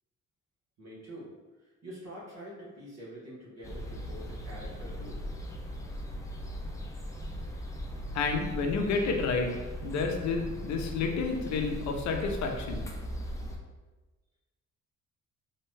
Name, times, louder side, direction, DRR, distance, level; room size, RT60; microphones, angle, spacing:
voice 1, 0.8-1.3 1.6-5.2, equal, 55° right, -7 dB, 1.0 m, -46 dB
sound 1, 3.6-13.6, equal, 10° left, 0.4 m, -39 dB
voice 2, 8.1-9.5 9.8-12.9, left 4 dB, 65° left, 3 dB, 0.5 m, -30 dB
2.7 x 2.1 x 3.1 m, 1.2 s
cardioid pair, 90°, 30 cm